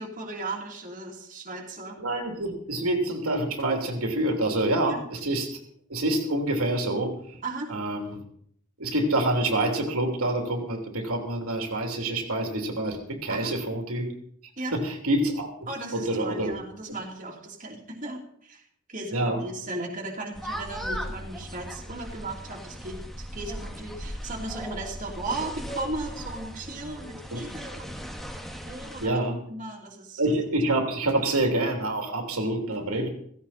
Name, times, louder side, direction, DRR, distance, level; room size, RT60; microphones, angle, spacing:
voice 1, 0.0-2.0 4.8-5.0 7.4-7.7 13.3-13.5 14.6-14.7 15.7-18.6 18.9-23.0 23.3-28.0 28.6-29.2 29.5-30.2, right 2 dB, 35° right, -1 dB, 2.9 m, -36 dB
voice 2, 2.0-5.5 5.9-7.1 7.7-8.2 8.8-14.1 14.7-15.5 15.9-16.5 19.1-19.4 27.3-27.4 29.0-29.4 30.2-33.1, right 1 dB, 75° right, 3 dB, 3.1 m, -27 dB
sound 1, 20.3-29.1, equal, ahead, 1.7 m, -38 dB
16.5 x 16.0 x 4.3 m, 0.65 s
head